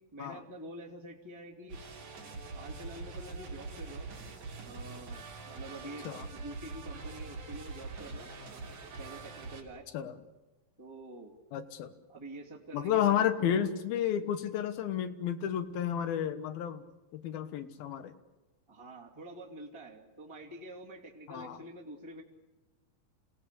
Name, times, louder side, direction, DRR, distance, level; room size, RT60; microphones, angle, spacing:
voice 1, 0.1-1.8 2.5-4.1 4.6-8.3 9.0-9.8 10.8-11.4 12.1-13.7 18.7-22.2, right 1 dB, 10° right, -3 dB, 2.2 m, -47 dB
sound 1, 1.7-9.6, right 3 dB, 65° right, 4.7 m, -43 dB
voice 2, 11.5-11.9 12.7-16.8 17.1-18.1 21.3-21.6, left 9 dB, 85° left, 10 dB, 3.2 m, -31 dB
27.5 x 18.0 x 8.4 m, 1.1 s
omnidirectional pair, 4.2 m